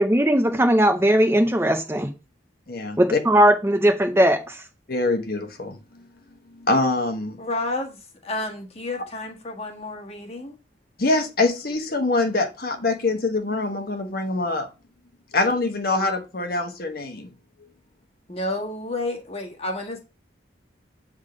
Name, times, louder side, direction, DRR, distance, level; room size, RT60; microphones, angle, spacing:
voice 1, 0.0-2.1 3.0-4.6, right 1 dB, 15° right, 0.6 m, -18 dB
voice 2, 2.7-3.2 4.9-5.8 6.6-7.4 11.0-14.7 15.3-17.3, left 2 dB, 50° left, 1.1 m, -24 dB
voice 3, 7.4-10.6 18.3-20.0, left 2 dB, 35° left, 1.6 m, -30 dB
8.1 x 3.7 x 5.0 m
head